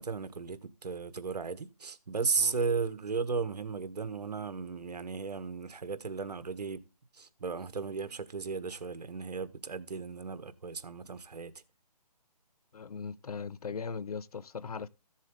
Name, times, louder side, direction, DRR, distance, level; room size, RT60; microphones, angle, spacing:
voice 1, 0.0-6.8 7.2-11.5, right 5 dB, 70° right, 1.4 m, -35 dB
voice 2, 12.7-14.9, left 5 dB, 65° left, 0.6 m, -39 dB
14.5 x 7.4 x 3.7 m
hypercardioid pair, 165°, 21 cm